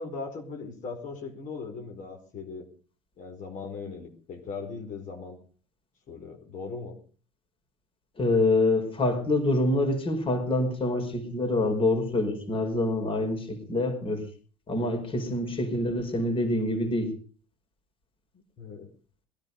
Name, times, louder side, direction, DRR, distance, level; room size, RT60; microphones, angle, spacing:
voice 1, 0.0-2.7 3.2-5.4 6.1-6.9 18.6-18.9, left 4 dB, 55° left, 2 dB, 4.8 m, -39 dB
voice 2, 8.2-14.2 14.7-17.1, left 2 dB, 35° left, 5 dB, 5.0 m, -26 dB
21.5 x 11.0 x 5.4 m, 0.40 s
supercardioid pair, 95°, 16 cm